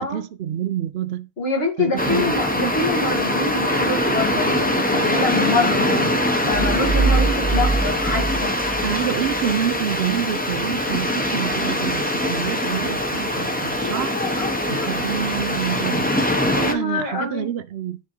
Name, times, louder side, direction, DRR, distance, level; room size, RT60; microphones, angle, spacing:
voice 1, 0.0-1.3 1.8-2.7 8.8-14.2 14.7-16.1 16.5-18.0, right 10 dB, 75° right, 0.8 m, -27 dB
voice 2, 1.4-8.6 13.8-14.9 16.6-17.5, left 3 dB, 75° left, 1.9 m, -26 dB
sound 1, 2.0-16.7, left 1 dB, 10° left, 0.6 m, -23 dB
sound 2, 6.5-9.4, right 3 dB, 35° right, 0.9 m, -23 dB
10.0 x 3.5 x 3.0 m
omnidirectional pair, 1.0 m